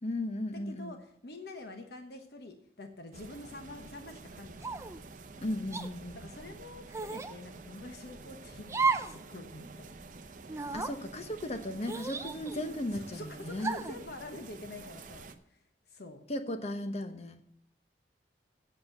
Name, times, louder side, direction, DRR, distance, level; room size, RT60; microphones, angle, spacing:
voice 1, 0.0-1.0 5.4-6.2 10.7-13.7 16.3-17.4, left 1 dB, 35° left, 8 dB, 1.0 m, -36 dB
voice 2, 0.5-4.8 6.1-10.0 12.9-16.2, left 2 dB, 60° left, 5 dB, 1.2 m, -47 dB
sound 1, 3.1-15.4, right 3 dB, 45° right, 0.8 m, -49 dB
sound 2, 4.6-5.0 5.7-5.9 6.9-7.3 8.7-9.2 9.5-9.6 10.5-10.9 11.8-12.8 13.6-14.0, right 4 dB, 15° right, 0.5 m, -33 dB
8.2 x 7.9 x 7.8 m, 0.67 s
head